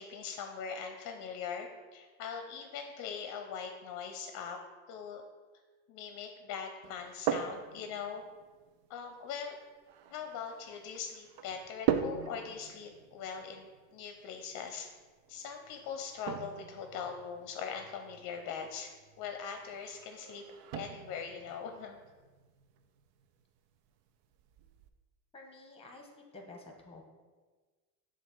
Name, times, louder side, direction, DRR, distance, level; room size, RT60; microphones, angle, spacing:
voice 1, 0.0-4.6 4.9-5.2 5.9-8.2 8.9-9.6 10.1-14.9 15.3-20.4 20.7-22.0, left 6 dB, 45° left, 5 dB, 0.7 m, -41 dB
sound 1, 6.8-24.9, right 9 dB, 55° right, 0.5 m, -41 dB
voice 2, 25.3-27.0, left 2 dB, 15° left, 2 dB, 1.1 m, -51 dB
7.0 x 2.6 x 5.3 m, 1.4 s
supercardioid pair, 95°, 43 cm